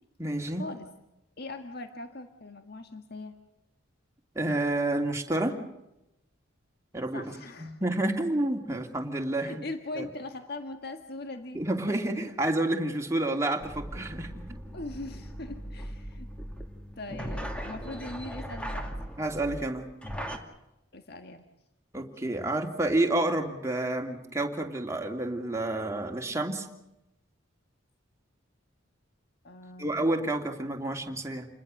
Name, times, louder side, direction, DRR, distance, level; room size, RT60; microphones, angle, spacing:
voice 1, 0.2-0.7 4.3-5.6 6.9-7.2 7.6-9.6 10.0-10.1 11.5-14.6 19.2-19.9 21.9-26.7 29.8-31.5, right 1 dB, 15° right, 2 dB, 2.9 m, -29 dB
voice 2, 1.4-3.3 7.1-7.8 9.4-11.6 11.9-12.0 14.7-16.3 17.0-18.9 20.9-21.4 29.4-30.1, left 2 dB, 50° left, 6 dB, 1.7 m, -40 dB
sound 1, 13.6-20.4, equal, 5° left, 2.4 m, -39 dB
29.0 x 21.0 x 6.6 m, 0.88 s
head